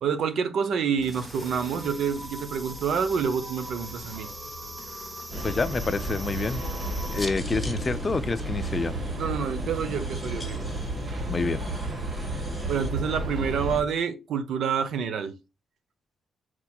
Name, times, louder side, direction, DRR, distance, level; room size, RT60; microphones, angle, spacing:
voice 1, 0.0-4.3 9.2-10.7 12.3-15.3, right 7 dB, 75° right, 0.7 m, -28 dB
sound 1, 1.0-7.3, right 1 dB, 15° right, 1.0 m, -40 dB
sound 2, 5.3-13.8, right 1 dB, 45° right, 1.3 m, -32 dB
voice 2, 5.4-6.6 7.1-8.9 11.3-11.6, left 4 dB, 35° left, 0.4 m, -28 dB
sound 3, 6.4-12.9, left 2 dB, 15° left, 1.3 m, -41 dB
4.4 x 4.3 x 2.2 m
cardioid pair, 85°, 0 cm